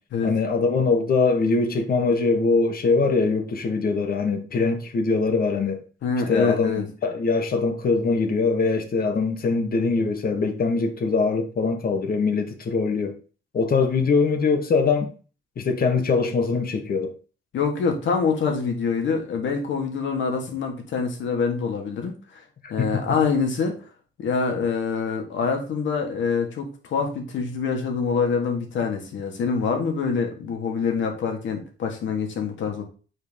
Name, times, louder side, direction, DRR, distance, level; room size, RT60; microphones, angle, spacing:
voice 1, 0.2-5.8 6.3-13.1 13.5-15.1 15.6-17.1 22.6-22.9, left 4 dB, 50° left, 1.4 m, -22 dB
voice 2, 6.0-6.9 17.5-22.4 22.7-23.7 24.2-32.8, left 5 dB, 70° left, 1.9 m, -25 dB
6.5 x 4.8 x 3.5 m
cardioid pair, 90°, 20 cm